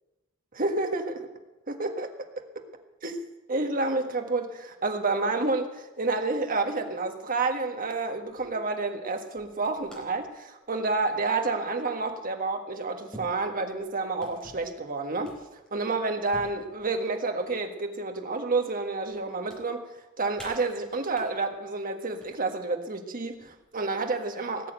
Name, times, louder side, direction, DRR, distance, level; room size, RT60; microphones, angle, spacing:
voice 1, 0.5-1.3 1.7-2.4 3.0-3.2 3.5-24.7, right 3 dB, 40° right, 5 dB, 1.6 m, -29 dB
sound 1, 7.5-7.8 8.2-8.5 9.3-10.2 10.6-11.0 12.0-12.1 13.1-13.8 14.2-14.7 15.2-15.8 16.3-17.6 18.0-18.8 19.1-19.6 20.4-21.3 22.0-22.3 23.3-23.8, right 1 dB, 5° left, 4.5 m, -49 dB
18.5 x 7.6 x 8.9 m, 1.1 s
head